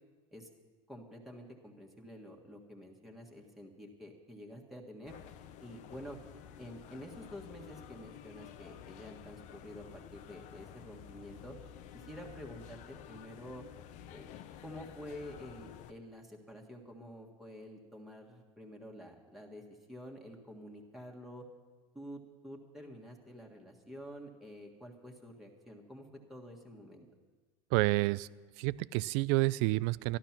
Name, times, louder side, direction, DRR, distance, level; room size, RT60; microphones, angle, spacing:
voice 1, 0.9-5.1 5.6-6.2 6.6-11.6 11.9-13.6 14.1-14.3 14.6-19.6 19.9-21.4 21.9-27.1, equal, ahead, -1 dB, 1.6 m, -49 dB
sound 1, 5.1-15.9, left 9 dB, 55° left, 0.7 m, -51 dB
voice 2, 27.7-28.3 28.6-30.2, right 20 dB, 65° right, 20 dB, 0.4 m, -29 dB
13.5 x 11.5 x 5.9 m, 1.4 s
supercardioid pair, 115°, 15 cm